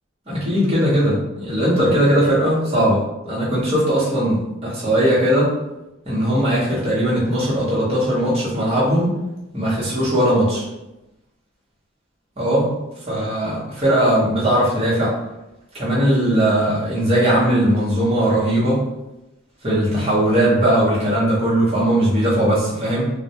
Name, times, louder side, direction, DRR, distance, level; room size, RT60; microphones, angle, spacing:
voice 1, 0.3-5.5 6.1-9.1 9.5-10.6 12.4-12.7 13.1-15.2 15.7-18.8 19.6-23.1, right 1 dB, 30° right, -7 dB, 0.8 m, -19 dB
2.2 x 2.0 x 2.7 m, 0.95 s
head